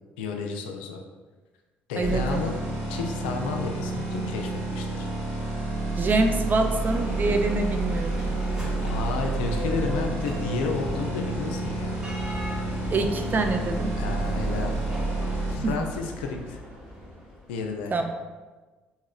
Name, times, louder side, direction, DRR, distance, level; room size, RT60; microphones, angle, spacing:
voice 1, 0.2-1.0 1.9-2.6 2.9-5.1 8.8-12.2 14.0-14.8 15.2-16.6 17.5-17.9, left 4 dB, 75° left, 3 dB, 0.3 m, -32 dB
voice 2, 2.0-2.4 6.0-8.2 12.9-13.9 15.6-15.9 17.9-18.1, right 3 dB, 35° right, 5 dB, 0.4 m, -25 dB
sound 1, 2.0-15.5, right 2 dB, 70° right, 1.5 m, -29 dB
Bell, 5.9-17.7, left 1 dB, 15° right, 1.1 m, -37 dB
2.9 x 2.8 x 2.4 m, 1.3 s
hypercardioid pair, 55°, 6 cm